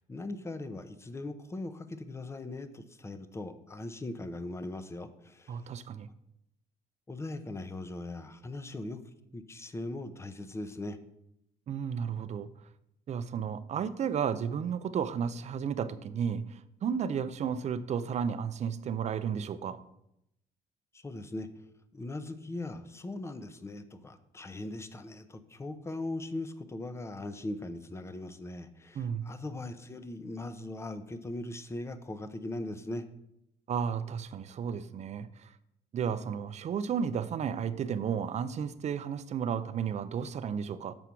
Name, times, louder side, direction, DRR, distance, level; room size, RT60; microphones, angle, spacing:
voice 1, 0.0-5.7 7.1-9.0 9.3-11.0 20.9-21.5 21.9-33.1, left 2 dB, 15° left, 0.7 m, -40 dB
voice 2, 5.5-6.1 11.7-12.5 13.1-19.8 29.0-29.3 33.7-35.5 35.9-40.9, right 7 dB, 40° right, 0.5 m, -33 dB
7.0 x 4.9 x 5.9 m
cardioid pair, 110°, 17 cm